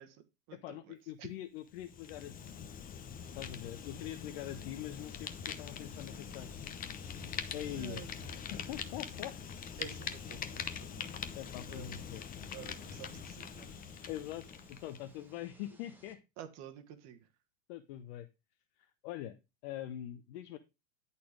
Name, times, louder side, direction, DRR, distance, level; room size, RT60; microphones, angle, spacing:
voice 1, 0.0-1.3 7.7-8.3 9.8-11.1 11.7-12.0 12.5-14.1 16.4-17.3, right 10 dB, 40° right, 1.2 m, -51 dB
voice 2, 0.6-2.7 3.3-6.7 7.5-8.0 8.7-9.4 11.3-12.3 14.1-16.2 17.7-18.3 18.8-19.4 19.6-20.6, left 12 dB, 55° left, 0.8 m, -43 dB
Fire, 1.7-15.0, left 7 dB, 20° left, 0.8 m, -43 dB
sound 1, 4.9-16.1, right 2 dB, 5° right, 1.5 m, -60 dB
10.0 x 4.2 x 4.9 m
hypercardioid pair, 120°, 38 cm